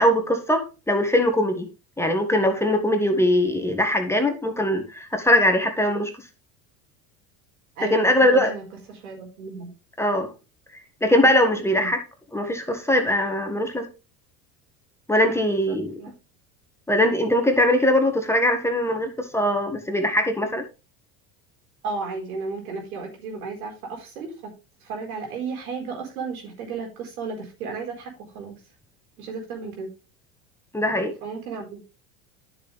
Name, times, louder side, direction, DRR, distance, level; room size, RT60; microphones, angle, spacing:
voice 1, 0.0-1.7 2.0-6.1 7.8-8.5 10.0-10.3 11.0-12.0 12.3-13.9 15.1-15.9 16.9-20.6 30.7-31.1, left 1 dB, 5° left, 5 dB, 1.7 m, -21 dB
voice 2, 7.8-9.7 11.7-11.9 15.2-16.1 21.8-24.5 24.8-28.5 29.2-29.9 31.2-31.8, right 4 dB, 80° right, 1 dB, 4.4 m, -34 dB
10.5 x 6.9 x 3.4 m, 0.30 s
hypercardioid pair, 90°, 42 cm